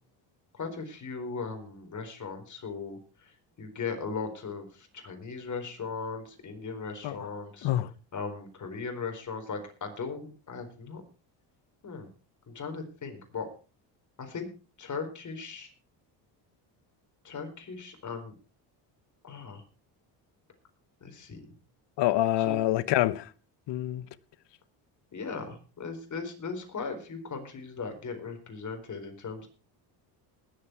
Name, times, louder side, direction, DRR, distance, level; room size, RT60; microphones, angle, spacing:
voice 1, 0.5-3.3 3.6-7.7 8.1-11.0 11.8-12.1 12.5-13.5 14.2-14.5 14.8-15.7 17.2-18.3 19.2-19.6 21.0-21.5 22.4-22.6 25.1-29.5, left 4 dB, 40° left, 4.3 m, -38 dB
voice 2, 22.0-23.3 23.7-24.0, left 14 dB, 65° left, 1.0 m, -26 dB
20.0 x 7.6 x 4.6 m
cardioid pair, 90°, 45 cm